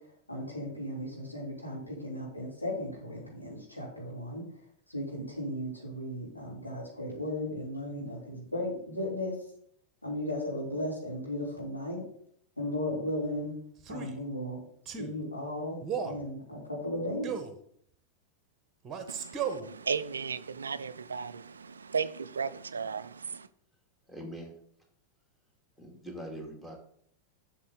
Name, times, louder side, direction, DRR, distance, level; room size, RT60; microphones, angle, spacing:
voice 1, 0.3-4.4 4.9-9.4 10.0-12.0 12.6-13.6 13.9-14.6 15.0-17.3, left 1 dB, 85° left, -4 dB, 3.4 m, -36 dB
Male speech man speaking, 13.8-14.2 14.9-15.1 15.8-16.2 17.2-17.6 18.8-19.7, right 7 dB, 25° right, 1.1 m, -35 dB
voice 2, 19.1-23.5, right 5 dB, 70° right, 15 dB, 0.4 m, -35 dB
voice 3, 24.1-24.6 25.8-26.8, equal, 10° left, 0 dB, 2.4 m, -42 dB
7.5 x 6.7 x 3.9 m, 0.65 s
figure-of-eight pair, 90°, 0 cm